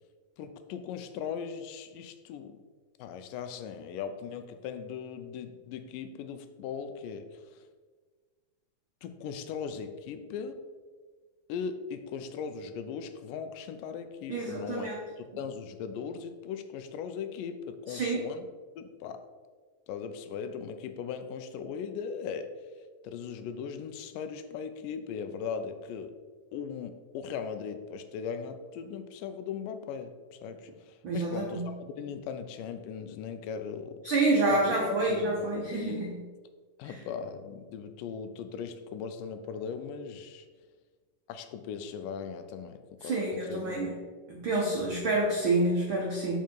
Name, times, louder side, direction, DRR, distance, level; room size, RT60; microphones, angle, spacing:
voice 1, 0.4-2.6 3.0-7.6 9.0-10.6 11.5-18.5 18.8-19.2 19.9-22.5 23.0-26.1 26.5-34.0 34.5-34.6 34.9-36.0 36.8-40.5 41.3-43.8, left 6 dB, 80° left, 9 dB, 2.2 m, -39 dB
voice 2, 14.3-15.0 17.9-18.2 31.0-31.7 34.0-36.2 36.8-37.0 43.0-43.9 44.3-46.4, right 2 dB, 75° right, -3 dB, 1.1 m, -28 dB
7.0 x 5.7 x 4.5 m, 1.5 s
omnidirectional pair, 3.9 m